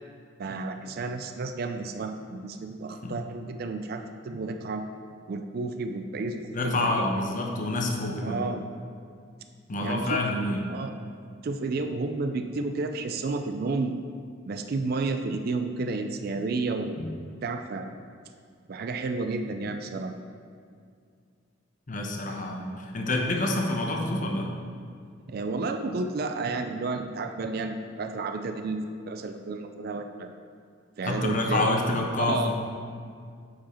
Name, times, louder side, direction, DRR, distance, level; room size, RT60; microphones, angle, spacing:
voice 1, 0.4-4.8 5.3-7.0 8.2-8.6 9.8-10.0 10.7-10.9 11.4-14.0 14.5-17.1 17.4-17.9 18.7-20.1 25.3-30.3 31.0-31.7 32.2-32.5, right 3 dB, 50° right, 6 dB, 0.4 m, -31 dB
voice 2, 6.5-8.4 9.7-10.6 17.0-17.1 21.9-24.5 31.0-32.5, left 2 dB, 40° left, 1 dB, 0.8 m, -27 dB
7.3 x 5.0 x 4.3 m, 2.2 s
head